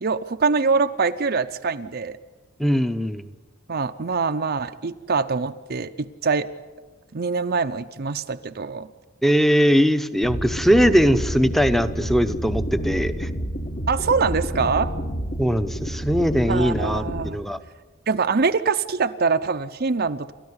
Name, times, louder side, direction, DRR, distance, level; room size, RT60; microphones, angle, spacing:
voice 1, 0.0-2.2 3.7-6.5 7.1-8.9 13.9-14.9 16.5-17.4 18.1-20.3, right 4 dB, 45° right, 7 dB, 0.6 m, -24 dB
voice 2, 2.6-3.3 9.2-13.3 15.4-17.6, equal, ahead, 11 dB, 0.8 m, -20 dB
sound 1, 10.2-17.3, equal, 45° left, 1.4 m, -29 dB
29.5 x 13.5 x 9.7 m, 1.3 s
head